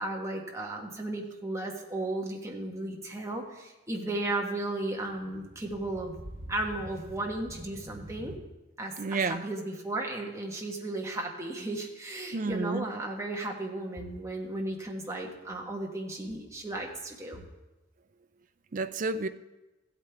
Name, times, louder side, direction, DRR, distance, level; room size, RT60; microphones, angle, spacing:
voice 1, 0.0-6.1 6.5-8.3 8.8-17.4, right 2 dB, 15° right, 0 dB, 1.3 m, -35 dB
sound 1, 4.7-8.4, right 1 dB, 70° right, 1.5 m, -46 dB
voice 2, 9.0-9.4 12.3-12.9 18.7-19.3, right 3 dB, 40° right, 12 dB, 0.4 m, -30 dB
15.5 x 8.4 x 3.4 m, 1.1 s
head